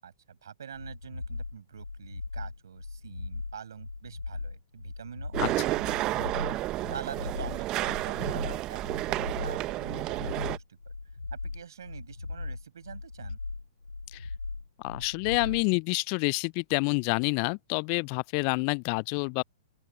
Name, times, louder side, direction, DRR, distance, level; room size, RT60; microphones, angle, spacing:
voice 1, 0.0-6.3 6.9-8.8 9.1-10.8 11.3-13.4, right 8 dB, 65° right, 7.1 m, -45 dB
sound 1, 0.7-15.7, left 3 dB, 85° left, 5.5 m, -39 dB
sound 2, 5.3-10.6, right 16 dB, 30° right, 1.1 m, -31 dB
voice 2, 14.8-19.4, left 40 dB or more, 40° left, 0.4 m, -28 dB
open air
figure-of-eight pair, 110°, 2 cm